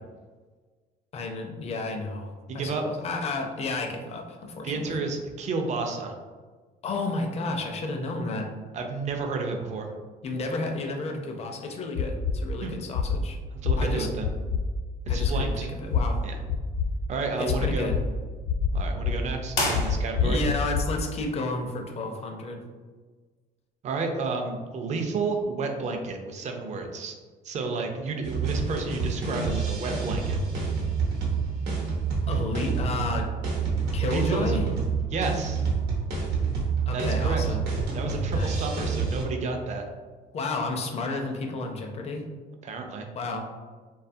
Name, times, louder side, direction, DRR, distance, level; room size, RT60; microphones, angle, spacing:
voice 1, 1.1-5.0 6.8-8.5 10.2-13.4 13.8-14.1 15.1-16.2 17.4-18.0 20.2-22.6 32.3-33.3 33.9-34.7 36.9-37.6 38.3-38.7 40.3-42.3 43.1-43.5, left 3 dB, 40° left, 3 dB, 0.4 m, -32 dB
voice 2, 2.5-2.8 4.6-6.2 8.7-9.9 12.6-12.7 13.6-14.3 15.1-15.7 16.2-16.4 17.1-17.9 18.7-20.4 23.8-27.2 27.4-30.4 34.0-34.6 35.1-35.6 36.9-37.4 37.9-39.8 42.6-43.1, right 4 dB, 45° right, 3 dB, 0.4 m, -31 dB
sound 1, 12.0-12.3 12.9-13.2 13.6-13.8 14.2-14.6 15.1-15.4 15.9-16.0 16.5-16.9 17.5-18.0 18.5-19.1 19.7-20.8, left 7 dB, 90° left, 0.5 m, -25 dB
sound 2, 19.5-20.5, left 1 dB, 70° left, 0.9 m, -29 dB
sound 3, 28.2-39.2, right 5 dB, 90° right, 0.8 m, -28 dB
2.7 x 2.3 x 2.6 m, 1.4 s
cardioid pair, 110°, 17 cm